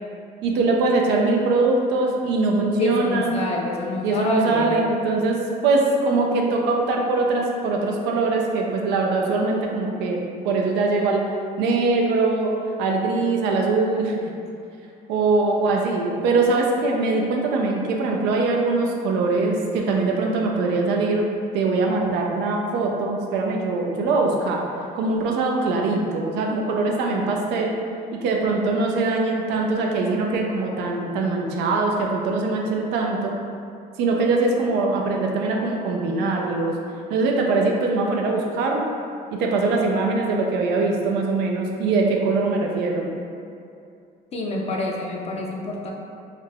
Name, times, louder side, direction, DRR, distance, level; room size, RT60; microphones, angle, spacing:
voice 1, 0.4-3.4 4.0-11.3 11.6-12.5 12.8-14.1 15.1-21.2 21.5-24.6 24.9-27.8 28.1-33.4 34.0-36.8 37.1-38.8 39.3-43.1, right 3 dB, 90° right, 0 dB, 0.4 m, -22 dB
voice 2, 2.8-4.8 44.3-45.9, left 1 dB, 40° left, -1 dB, 0.4 m, -27 dB
2.4 x 2.2 x 3.3 m, 2.5 s
cardioid pair, 110°, 17 cm